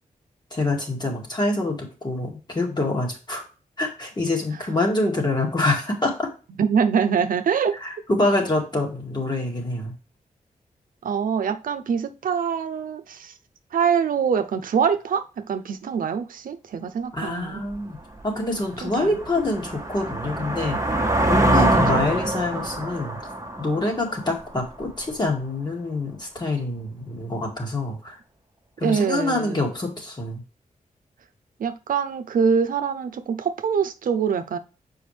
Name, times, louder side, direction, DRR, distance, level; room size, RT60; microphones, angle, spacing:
voice 1, 0.5-3.4 3.8-6.3 7.8-9.9 17.1-18.0 18.2-20.9 21.3-23.2 23.6-28.2 28.8-30.4, left 2 dB, 30° left, 2.2 m, -26 dB
voice 2, 6.6-7.8 11.0-13.3 13.7-17.6 18.8-19.2 21.9-22.1 28.8-29.7 31.6-34.6, right 6 dB, 90° right, 0.6 m, -24 dB
sound 1, 17.7-17.8 18.3-24.9, right 1 dB, 20° right, 1.3 m, -24 dB
7.0 x 4.9 x 3.3 m
wide cardioid pair, 120°, 14 cm